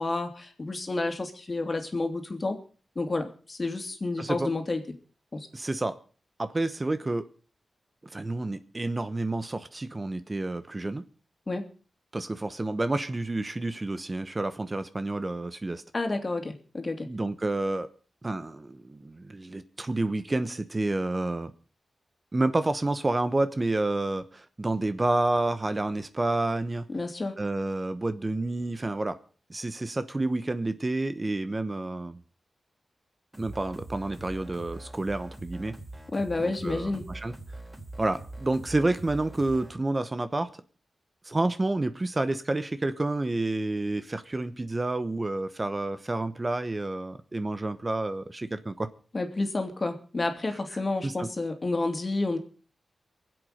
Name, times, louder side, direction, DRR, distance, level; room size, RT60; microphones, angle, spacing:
voice 1, 0.0-2.6 3.0-4.8 5.3-5.5 11.5-11.6 15.9-17.1 26.9-27.4 36.1-37.1 49.1-52.4, left 2 dB, 40° left, 2.5 m, -30 dB
voice 2, 4.2-4.5 5.5-6.0 6.4-7.3 8.1-11.0 12.1-15.8 17.0-17.9 18.2-21.5 22.3-26.8 27.4-29.2 29.5-32.2 33.4-35.7 36.4-37.3 38.0-40.5 41.2-48.9 51.0-51.3, right 2 dB, 30° right, 1.0 m, -29 dB
sound 1, 33.3-39.7, right 2 dB, 15° right, 4.2 m, -43 dB
23.5 x 7.9 x 5.1 m
cardioid pair, 60°, 0 cm